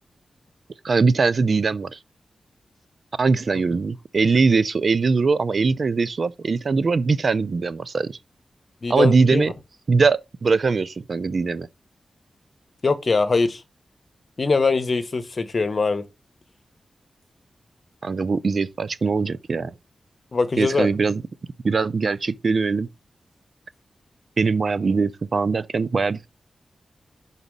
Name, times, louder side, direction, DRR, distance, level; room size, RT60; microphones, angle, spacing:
voice 1, 0.8-2.0 3.2-8.2 8.9-9.5 9.9-11.7 18.0-19.7 20.6-21.2 21.6-22.9 24.4-26.3, right 4 dB, 50° right, 0.4 m, -21 dB
voice 2, 8.8-9.4 12.8-13.6 14.4-16.0 20.3-20.9, left 4 dB, 45° left, 1.0 m, -22 dB
6.0 x 4.1 x 5.3 m
wide cardioid pair, 115°, 0 cm